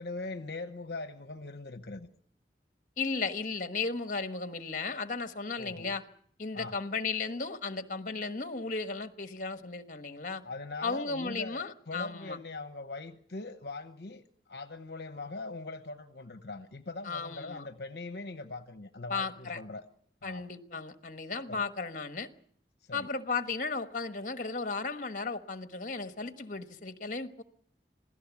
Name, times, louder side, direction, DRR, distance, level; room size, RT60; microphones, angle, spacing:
voice 1, 0.0-2.1 5.6-5.9 6.5-6.8 10.4-14.2 14.5-19.8 20.2-20.5 21.5-21.6 22.8-23.1, left 3 dB, 65° left, 1.0 m, -41 dB
voice 2, 3.0-6.0 6.4-10.4 10.8-12.4 17.0-17.7 19.1-19.6 20.2-22.3 22.9-27.4, left 4 dB, 45° left, 1.3 m, -35 dB
26.5 x 17.0 x 7.2 m
head